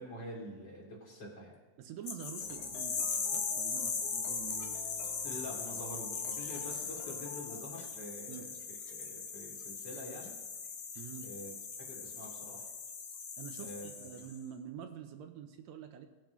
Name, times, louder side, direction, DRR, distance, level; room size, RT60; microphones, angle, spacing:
voice 1, 0.0-1.6 5.2-10.3 11.2-11.5 11.8-12.7 13.6-13.9, left 1 dB, 40° left, -3 dB, 3.0 m, -46 dB
voice 2, 1.8-4.8 8.3-8.5 10.9-11.3 13.4-16.1, right 9 dB, 75° right, 6 dB, 1.8 m, -47 dB
sound 1, 2.1-14.4, left 5 dB, 65° left, 1.1 m, -39 dB
sound 2, 2.4-7.6, left 9 dB, 85° left, 2.2 m, -51 dB
18.5 x 7.4 x 3.0 m, 1.2 s
omnidirectional pair, 3.3 m